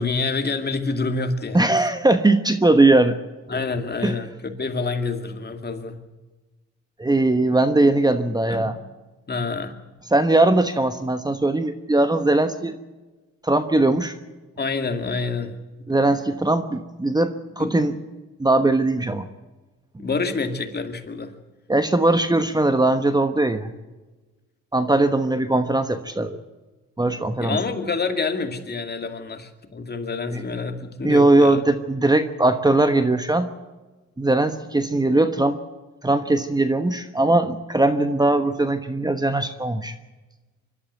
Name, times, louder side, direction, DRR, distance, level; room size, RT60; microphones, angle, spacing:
voice 1, 0.0-1.9 3.5-6.0 8.5-8.7 9.3-9.7 14.6-15.9 17.6-17.8 20.0-21.3 27.4-31.6, left 4 dB, 35° left, 6 dB, 2.4 m, -27 dB
voice 2, 1.5-3.2 4.0-4.1 7.0-8.7 10.1-12.8 13.4-14.2 15.9-17.9 18.4-19.3 21.7-23.7 24.7-26.4 27.0-27.6 30.3-30.4 31.0-33.5 34.2-35.6 36.0-39.9, right 2 dB, 15° right, 9 dB, 1.2 m, -20 dB
24.5 x 12.5 x 9.4 m, 1.2 s
cardioid pair, 90°, 30 cm